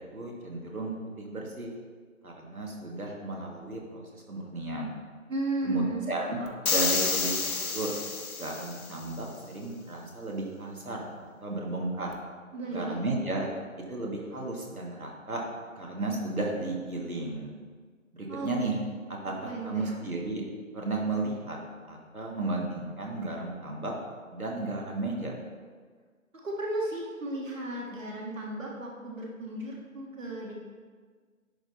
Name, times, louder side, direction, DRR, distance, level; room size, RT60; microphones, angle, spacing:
voice 1, 0.0-1.7 2.2-4.9 5.6-6.4 6.7-8.0 8.4-11.1 11.4-12.1 12.7-13.5 13.9-15.4 15.8-17.5 18.1-18.8 19.1-20.4 20.7-21.6 21.9-23.9 24.3-25.4, right 2 dB, 90° right, -1 dB, 1.8 m, -34 dB
voice 2, 5.3-6.0 6.4-6.6 12.5-13.0 18.3-18.6 19.4-20.0 26.4-30.5, right 2 dB, 65° right, -2 dB, 1.6 m, -34 dB
sound 1, 6.6-8.9, left 4 dB, 80° left, 1.0 m, -29 dB
10.5 x 3.8 x 3.9 m, 1.6 s
figure-of-eight pair, 155°, 42 cm